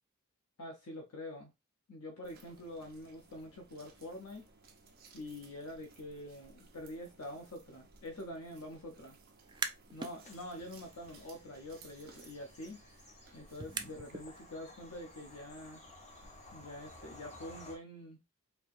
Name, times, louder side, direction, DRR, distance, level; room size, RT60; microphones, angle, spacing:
voice 1, 0.6-1.5 1.9-4.5 5.1-9.2 9.9-12.8 13.3-15.8 16.5-18.2, left 1 dB, 80° left, 0.8 m, -46 dB
sound 1, 2.2-17.6, right 3 dB, 45° right, 0.8 m, -61 dB
sound 2, 9.3-10.1 10.5-14.3, right 5 dB, 20° right, 0.3 m, -44 dB
Bird vocalization bird call bird song / Train, 10.2-17.7, left 2 dB, 30° left, 1.1 m, -56 dB
4.3 x 2.8 x 2.6 m
head